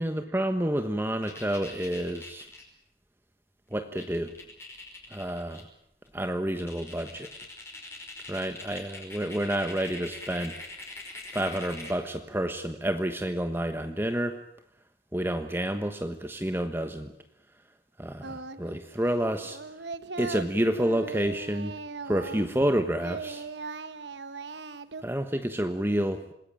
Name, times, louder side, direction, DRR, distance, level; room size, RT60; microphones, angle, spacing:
voice 1, 0.0-2.5 3.7-4.3 5.1-5.7 6.1-7.3 8.3-10.6 11.3-14.4 15.1-17.1 18.0-19.6 20.2-21.8 22.0-23.5 25.0-26.3, right 1 dB, 15° right, 7 dB, 1.3 m, -29 dB
sound 1, 1.2-2.6 3.7-3.8 4.0-5.6 6.0-6.1 6.6-12.0, left 2 dB, 15° left, 5.3 m, -43 dB
Singing, 18.2-18.8 19.0-22.7 23.0-25.0, right 4 dB, 85° right, 1.3 m, -39 dB
27.0 x 20.0 x 9.0 m, 0.75 s
head